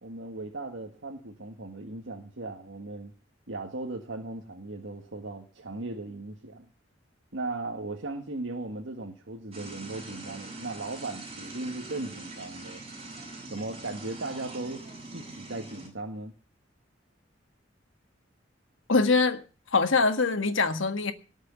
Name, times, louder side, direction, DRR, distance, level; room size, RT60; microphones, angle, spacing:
voice 1, 0.0-3.1 3.5-6.7 7.3-12.8 13.5-14.9 15.1-16.3, right 2 dB, 75° right, 1.9 m, -37 dB
sound 1, 9.5-15.9, right 2 dB, 30° right, 7.2 m, -43 dB
voice 2, 18.9-19.4 19.7-21.1, left 3 dB, 85° left, 1.7 m, -23 dB
19.0 x 6.5 x 8.3 m
head